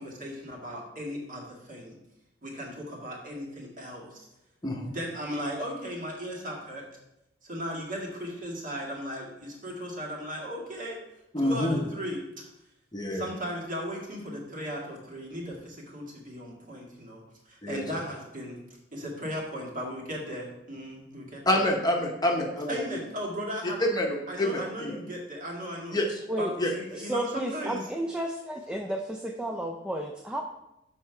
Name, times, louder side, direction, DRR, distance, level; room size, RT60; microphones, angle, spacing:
voice 1, 0.0-2.0 2.4-4.3 4.8-6.8 7.4-11.0 11.4-12.5 13.1-18.6 18.9-21.4 22.7-23.8 24.3-26.0 26.4-27.8, equal, 45° right, -2 dB, 1.9 m, -36 dB
voice 2, 11.3-11.8 12.9-13.3 17.6-17.8 21.5-22.8 23.8-25.0 25.9-26.2 26.6-26.7, left 1 dB, 20° left, 1 dB, 0.9 m, -27 dB
voice 3, 27.0-30.4, right 1 dB, 5° right, 1 dB, 0.4 m, -32 dB
6.7 x 5.4 x 4.7 m, 0.87 s
head